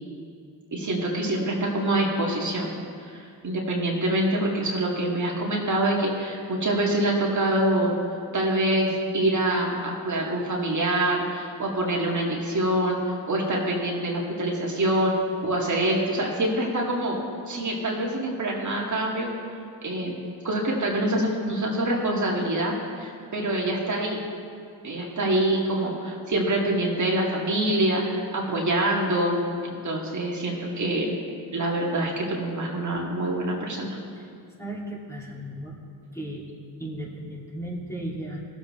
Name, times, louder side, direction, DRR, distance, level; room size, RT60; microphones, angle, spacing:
voice 1, 0.7-2.7 3.1-7.9 8.3-15.1 15.4-17.2 17.5-19.3 19.8-20.1 20.4-24.2 24.8-31.2 31.5-34.0, right 1 dB, 40° right, -2 dB, 2.0 m, -25 dB
voice 2, 34.6-35.7 36.1-36.4 36.8-38.4, right 1 dB, 5° left, -4 dB, 2.4 m, -35 dB
16.5 x 7.3 x 3.2 m, 2.4 s
supercardioid pair, 60°, 45 cm